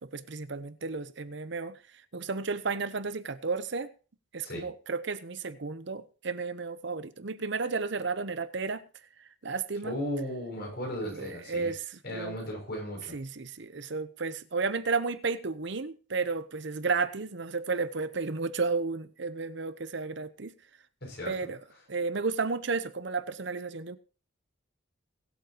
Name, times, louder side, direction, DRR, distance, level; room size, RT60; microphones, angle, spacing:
voice 1, 0.0-1.8 2.1-3.9 4.3-8.8 9.4-9.9 11.0-11.8 12.1-12.4 13.1-20.5 21.3-21.6 21.9-24.0, right 4 dB, 60° right, 0.8 m, -32 dB
voice 2, 9.8-11.7 12.0-13.2 21.0-21.5, equal, 55° left, 6.7 m, -36 dB
21.5 x 8.4 x 2.9 m
head